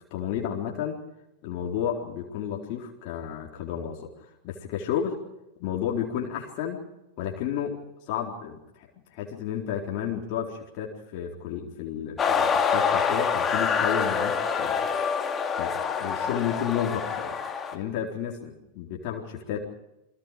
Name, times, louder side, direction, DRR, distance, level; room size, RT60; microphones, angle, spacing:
voice 1, 0.1-1.0 1.4-4.1 4.4-5.2 5.6-6.8 7.2-7.8 8.1-15.1 15.6-17.3 17.7-19.7, left 9 dB, 45° left, -1 dB, 4.1 m, -32 dB
sound 1, 12.2-17.8, left 6 dB, 20° left, 2.6 m, -26 dB
29.0 x 23.5 x 5.1 m, 0.89 s
figure-of-eight pair, 90°, 0 cm